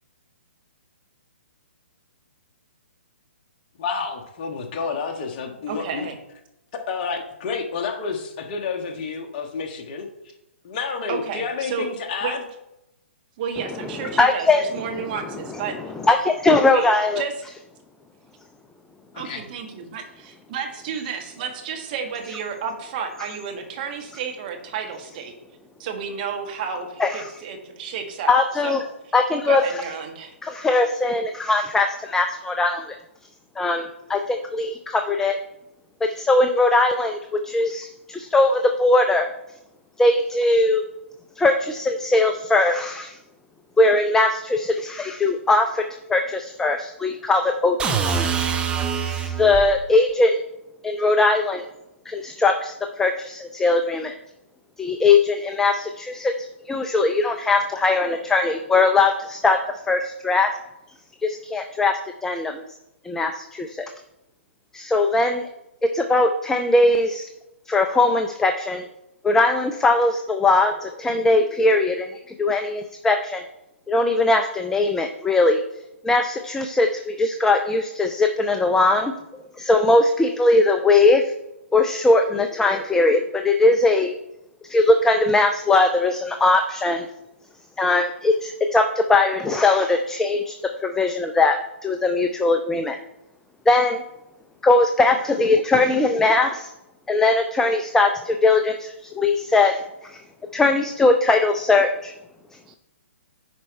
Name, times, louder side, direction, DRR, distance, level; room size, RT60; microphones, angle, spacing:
voice 1, 3.8-6.1 6.9-10.1 10.6-12.4 19.1-19.4, left 5 dB, 35° left, 2 dB, 1.3 m, -29 dB
voice 2, 5.7-6.2 11.1-11.9 12.2-12.4 13.4-15.7 16.7-16.9 17.2-17.3 19.1-25.3 25.8-28.4 28.6-28.8 29.5-30.3, right 7 dB, 40° right, 3 dB, 1.6 m, -31 dB
voice 3, 14.2-14.6 16.1-17.2 27.0-27.2 28.3-28.8 29.1-29.6 30.4-33.0 33.6-35.4 36.0-39.3 40.0-40.8 41.4-43.2 43.8-45.8 46.1-48.3 49.0-50.4 50.8-51.6 52.1-54.1 54.8-59.6 59.9-60.5 61.2-62.6 63.0-63.9 64.7-65.5 65.9-67.3 67.7-68.9 69.2-73.4 73.9-75.6 76.0-79.1 79.6-81.3 81.7-84.1 84.6-87.1 87.8-93.0 93.7-94.0 94.6-96.7 97.1-100.2 100.5-102.1, left 2 dB, 5° left, 6 dB, 0.4 m, -20 dB
sound 1, 47.8-49.7, right 6 dB, 15° right, 0.9 m, -24 dB
10.0 x 4.6 x 4.2 m, 0.90 s
figure-of-eight pair, 125°, 7 cm